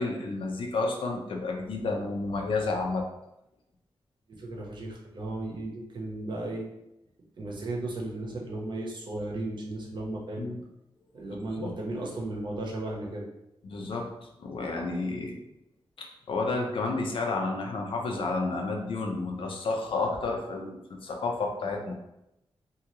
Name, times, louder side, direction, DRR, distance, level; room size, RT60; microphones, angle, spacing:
voice 1, 0.0-3.0 10.3-10.6 11.3-11.7 13.6-15.4 16.0-21.9, left 3 dB, 65° left, 2 dB, 0.5 m, -31 dB
voice 2, 4.3-6.6 7.4-10.5 11.1-13.3, right 2 dB, 55° right, -1 dB, 0.7 m, -35 dB
2.7 x 2.4 x 2.9 m, 0.86 s
wide cardioid pair, 135°, 10 cm